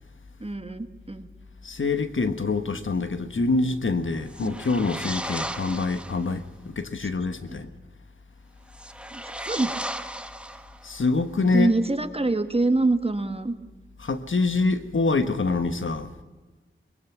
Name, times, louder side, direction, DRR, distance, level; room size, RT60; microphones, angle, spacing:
voice 1, 0.4-1.3 4.4-4.5 7.0-7.1 9.1-9.8 11.4-13.5, right 2 dB, 30° right, 1.4 m, -25 dB
voice 2, 1.6-7.7 10.8-11.7 14.0-16.1, left 3 dB, 75° left, 1.3 m, -25 dB
sound 1, 4.2-6.3 8.7-11.0, right 1 dB, 5° right, 1.0 m, -35 dB
22.5 x 21.0 x 6.0 m
wide cardioid pair, 75°, 20 cm